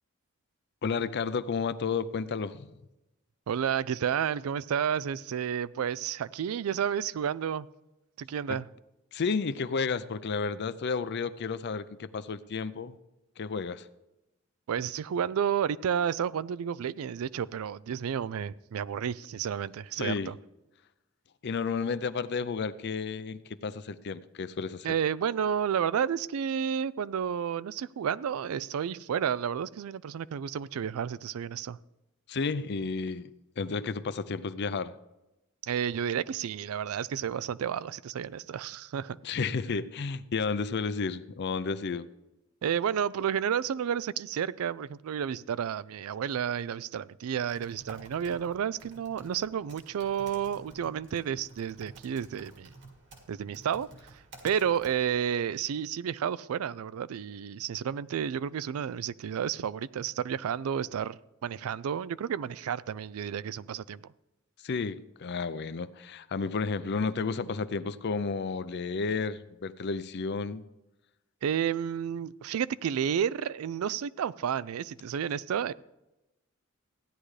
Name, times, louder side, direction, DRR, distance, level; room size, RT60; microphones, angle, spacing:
voice 1, 0.8-2.7 8.5-8.6 9.1-13.0 13.4-13.9 20.0-20.3 21.4-24.9 32.3-34.9 39.2-42.1 64.6-70.6, left 5 dB, 55° left, 0.5 m, -32 dB
voice 2, 3.5-7.7 8.2-8.7 14.7-20.3 24.8-31.8 35.6-39.2 42.6-52.7 53.3-53.9 54.4-61.2 61.4-64.1 71.4-75.7, right 8 dB, 90° right, 0.4 m, -31 dB
Typing, 47.3-55.5, right 2 dB, 60° right, 2.0 m, -52 dB
15.5 x 10.0 x 3.2 m
head